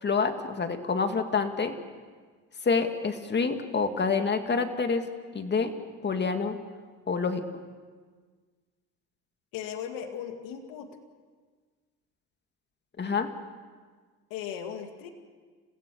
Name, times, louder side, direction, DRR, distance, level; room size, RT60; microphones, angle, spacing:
voice 1, 0.0-1.7 2.6-5.0 5.3-5.7 6.0-6.6 7.1-7.4 13.0-13.3, left 5 dB, 30° left, 7 dB, 2.3 m, -27 dB
voice 2, 9.5-10.9 14.3-15.1, left 8 dB, 80° left, 5 dB, 2.2 m, -37 dB
29.5 x 16.0 x 6.9 m, 1.5 s
supercardioid pair, 85°, 34 cm